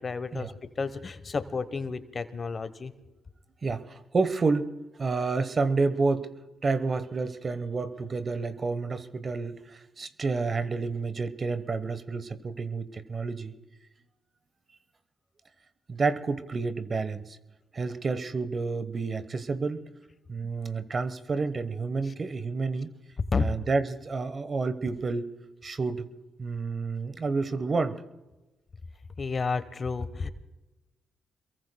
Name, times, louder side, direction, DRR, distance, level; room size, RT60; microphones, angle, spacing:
voice 1, 0.0-2.9 22.1-22.2 23.2-23.5 29.2-30.3, left 4 dB, 45° left, 13 dB, 1.2 m, -31 dB
voice 2, 3.6-4.7 5.0-6.3 6.6-13.5 15.9-17.4 17.7-19.8 20.3-22.9 23.4-25.3 25.6-26.1 26.4-28.0, right 4 dB, 45° right, 12 dB, 1.2 m, -29 dB
28.0 x 22.5 x 2.3 m, 1.1 s
hypercardioid pair, 45°, 0 cm